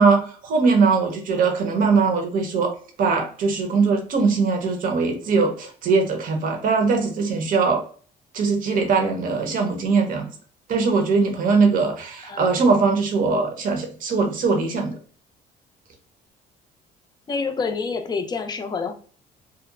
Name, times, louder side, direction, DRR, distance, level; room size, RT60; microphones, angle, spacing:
voice 1, 0.0-2.7 3.0-7.8 8.3-10.3 10.7-15.0, right 4 dB, 55° right, 4 dB, 0.7 m, -21 dB
voice 2, 17.3-18.9, left 4 dB, 25° left, 7 dB, 0.4 m, -27 dB
2.7 x 2.2 x 2.3 m, 0.43 s
cardioid pair, 110°, 17 cm